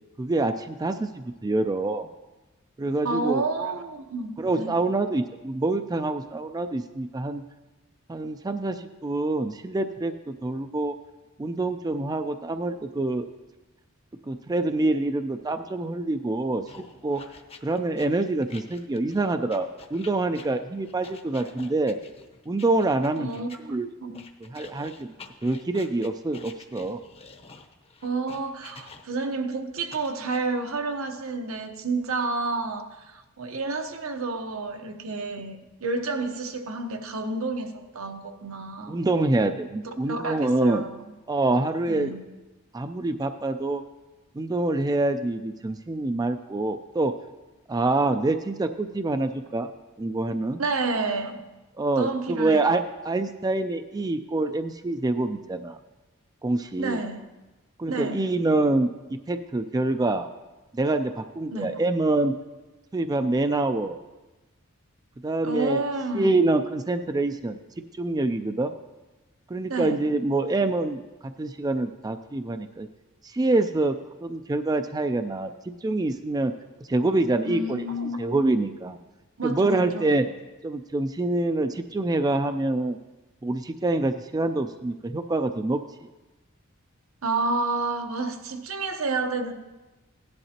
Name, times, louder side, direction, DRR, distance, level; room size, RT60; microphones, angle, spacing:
voice 1, 0.2-2.1 2.8-3.4 4.4-7.4 8.1-10.9 11.4-13.3 14.3-16.6 17.0-17.2 17.6-22.0 22.5-23.9 24.4-25.1 25.4-27.0 38.9-40.8 41.3-42.1 42.7-43.8 44.4-47.1 47.7-49.7 50.0-50.6 51.8-55.8 56.4-57.0 57.8-60.3 60.7-62.3 62.9-64.0 65.2-65.8 66.1-67.6 67.9-68.7 69.5-72.9 73.2-76.5 76.9-77.9 78.2-79.0 79.4-80.2 80.6-83.0 83.4-85.8, right 2 dB, 20° right, 0.4 m, -26 dB
voice 2, 3.0-4.8 23.2-24.3 28.0-39.0 40.0-41.1 41.8-42.2 50.6-51.4 52.0-52.7 56.8-57.2 57.9-58.2 61.5-61.8 65.4-66.4 69.7-70.0 77.4-78.4 79.4-80.2 87.2-89.5, right 3 dB, 75° right, 1.0 m, -30 dB
sound 1, 16.7-23.6 24.1-29.3 29.9-30.4, left 4 dB, 30° left, 0.8 m, -47 dB
17.0 x 11.0 x 2.9 m
head